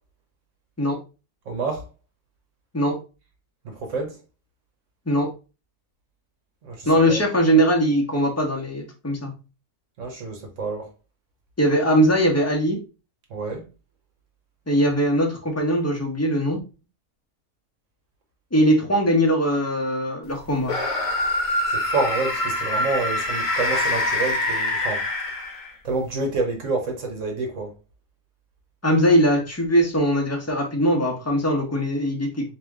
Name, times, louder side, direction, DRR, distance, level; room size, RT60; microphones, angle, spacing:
voice 1, 1.5-1.9 3.6-4.2 6.6-7.2 10.0-10.9 13.3-13.7 21.7-25.1 25.8-27.8, right 3 dB, 60° right, 1.2 m, -28 dB
voice 2, 6.8-9.3 11.6-12.8 14.7-16.6 18.5-20.8 28.8-32.5, equal, 10° left, 0.9 m, -21 dB
sound 1, 20.6-25.9, left 1 dB, 60° left, 1.2 m, -25 dB
3.3 x 2.9 x 3.5 m
omnidirectional pair, 1.6 m